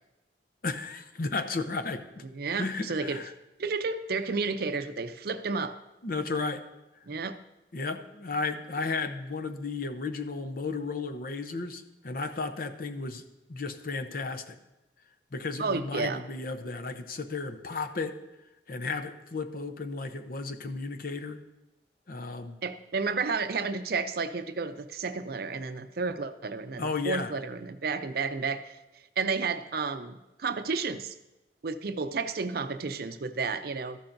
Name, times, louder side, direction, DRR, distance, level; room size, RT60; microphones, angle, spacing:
voice 1, 0.6-2.2 2.6-3.3 6.0-6.6 7.7-13.2 13.5-14.6 15.3-18.2 18.7-21.4 22.1-22.6 26.8-27.3, left 3 dB, 55° left, 8 dB, 0.7 m, -34 dB
voice 2, 2.3-3.2 3.6-5.8 7.1-7.4 15.6-16.2 22.6-28.8 29.2-31.1 31.6-34.0, right 4 dB, 60° right, 10 dB, 0.6 m, -31 dB
13.5 x 11.5 x 2.6 m, 0.97 s
head